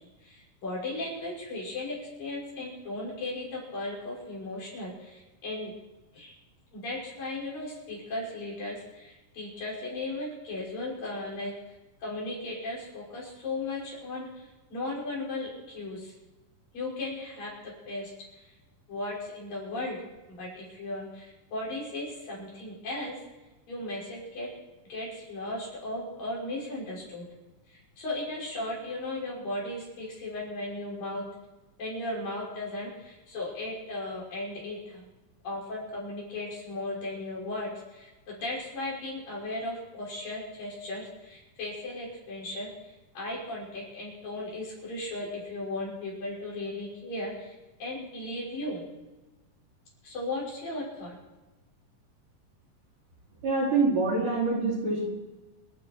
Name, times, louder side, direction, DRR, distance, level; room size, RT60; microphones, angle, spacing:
voice 1, 0.2-5.7 6.1-6.3 6.7-11.5 12.0-16.1 16.7-18.5 18.9-20.0 20.3-23.2 23.7-24.5 24.9-27.3 27.7-31.2 31.8-35.1 35.4-47.5 47.8-48.8 50.0-51.2, left 2 dB, 70° left, -5 dB, 7.4 m, -36 dB
voice 2, 53.4-55.0, right 3 dB, 60° right, -4 dB, 5.7 m, -25 dB
27.5 x 10.0 x 4.6 m, 1.1 s
omnidirectional pair, 4.1 m